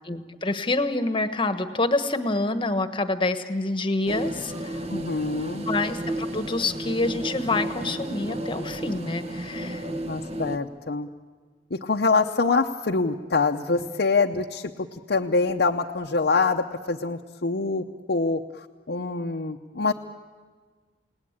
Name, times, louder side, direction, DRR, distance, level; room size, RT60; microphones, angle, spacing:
voice 1, 0.1-4.8 5.7-9.9 13.7-13.9, left 2 dB, 30° left, 9 dB, 1.3 m, -27 dB
sound 1, 4.1-10.6, right 1 dB, 35° right, 1.2 m, -33 dB
voice 2, 4.9-5.7 10.1-11.1 11.7-18.4 18.9-19.9, left 4 dB, 65° left, 2 dB, 0.8 m, -25 dB
29.5 x 18.5 x 8.8 m, 1.5 s
head